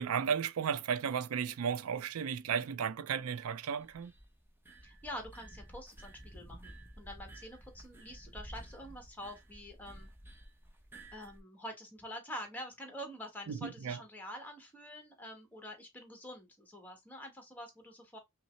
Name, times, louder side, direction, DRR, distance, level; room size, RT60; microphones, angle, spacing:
voice 1, 0.0-4.1 13.5-14.0, right 7 dB, 80° right, 0.4 m, -34 dB
sound 1, 3.8-11.4, right 1 dB, 10° right, 0.6 m, -52 dB
voice 2, 4.8-10.1 11.1-18.2, equal, 10° left, 1.1 m, -46 dB
5.4 x 2.0 x 3.0 m
head